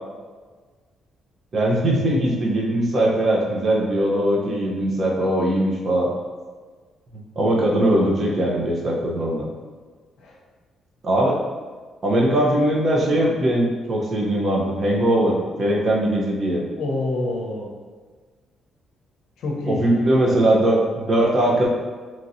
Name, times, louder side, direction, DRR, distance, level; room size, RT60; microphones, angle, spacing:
voice 1, 1.5-6.1 7.3-9.4 11.0-11.4 12.0-16.6 19.7-21.7, right 1 dB, 45° right, -3 dB, 0.7 m, -20 dB
voice 2, 16.6-17.8 19.4-20.4, left 2 dB, 80° left, -1 dB, 0.6 m, -28 dB
2.9 x 2.7 x 2.6 m, 1.4 s
cardioid pair, 90°, 0 cm